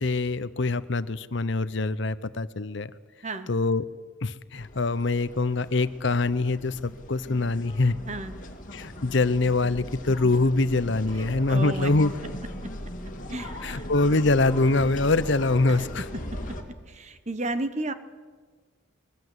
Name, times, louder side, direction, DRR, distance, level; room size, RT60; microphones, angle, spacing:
voice 1, 0.0-2.9 3.5-3.8 4.2-7.9 8.7-12.1 13.6-16.0, left 3 dB, 55° left, 15 dB, 0.8 m, -24 dB
sound 1, 4.6-16.6, left 1 dB, 40° left, 2.7 m, -39 dB
voice 2, 11.5-11.9 13.3-13.8 15.7-15.8 16.5-16.6 16.9-17.9, right 2 dB, 35° right, 10 dB, 1.3 m, -32 dB
24.0 x 21.5 x 8.0 m, 1.5 s
head